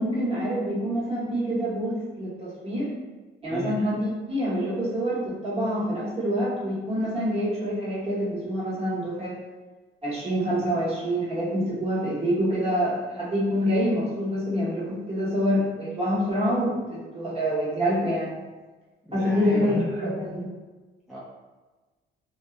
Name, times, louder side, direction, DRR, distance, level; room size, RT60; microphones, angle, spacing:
voice 1, 0.0-2.9 3.4-9.4 10.0-18.3 19.1-20.5, equal, 30° right, -8 dB, 1.3 m, -26 dB
voice 2, 19.0-19.8 21.1-21.2, left 1 dB, ahead, -7 dB, 0.4 m, -34 dB
2.5 x 2.2 x 2.4 m, 1.3 s
cardioid pair, 90°, 20 cm